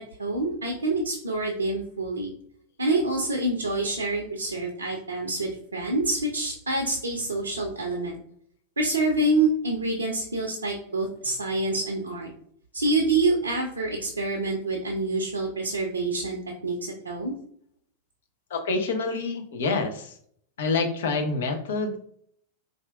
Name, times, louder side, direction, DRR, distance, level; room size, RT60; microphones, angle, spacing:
voice 1, 0.2-2.3 2.8-8.2 8.8-12.3 12.7-17.3, right 2 dB, 75° right, 1 dB, 0.5 m, -27 dB
voice 2, 18.5-20.1 20.6-22.0, left 3 dB, 60° left, 5 dB, 0.6 m, -27 dB
4.1 x 2.4 x 2.4 m, 0.64 s
figure-of-eight pair, 90°, 0 cm